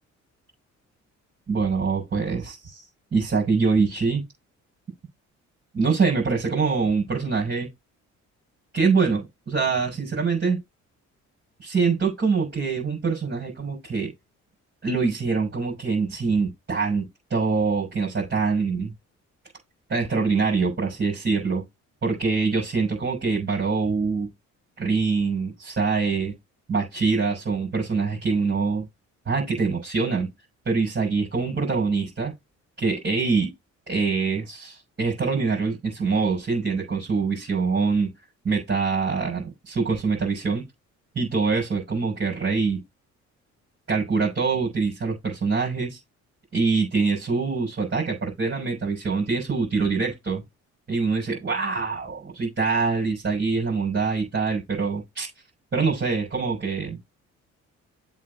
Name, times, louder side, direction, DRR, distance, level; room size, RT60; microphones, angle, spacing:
voice 1, 1.5-2.8 3.1-4.2 5.7-7.7 8.7-10.6 11.6-14.1 14.8-18.9 19.9-21.6 22.0-24.3 24.8-26.3 26.7-28.8 29.3-30.3 30.6-32.3 32.8-33.5 33.9-38.1 38.4-40.7 41.1-42.8 43.9-46.0 46.5-50.4 50.9-55.3 55.7-57.0, right 4 dB, 35° right, 6.0 m, -24 dB
7.5 x 4.0 x 5.0 m
cardioid pair, 90°, 30 cm